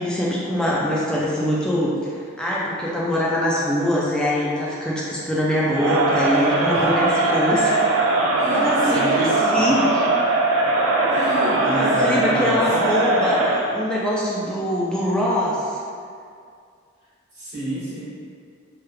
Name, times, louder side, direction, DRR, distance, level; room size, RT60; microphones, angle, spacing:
voice 1, 0.0-1.9 2.4-7.8 8.5-10.0 11.4-15.8, equal, 5° left, -6 dB, 0.4 m, -23 dB
Crowd, 5.7-13.8, right 2 dB, 70° right, 0.4 m, -20 dB
voice 2, 6.7-7.1 8.3-9.7 11.1-12.6 17.3-18.0, equal, 35° right, -14 dB, 1.4 m, -29 dB
3.3 x 3.1 x 2.2 m, 2.3 s
head